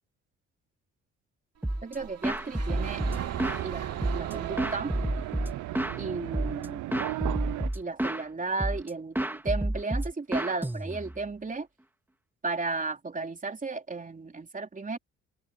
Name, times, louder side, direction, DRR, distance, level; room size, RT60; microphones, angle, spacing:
sound 1, 1.6-1.9 2.2-3.6 4.0-6.0 6.3-6.7 6.9-8.2 8.6-8.9 9.1-11.2, right 1 dB, 5° right, 1.9 m, -30 dB
sound 2, 1.6-7.8, right 8 dB, 55° right, 2.4 m, -41 dB
voice 1, 1.8-3.1 3.6-4.9 6.0-6.8 7.8-11.7 12.4-15.0, right 3 dB, 25° right, 3.4 m, -34 dB
sound 3, 2.7-7.7, right 17 dB, 80° right, 0.6 m, -35 dB
cardioid pair, 90°, 30 cm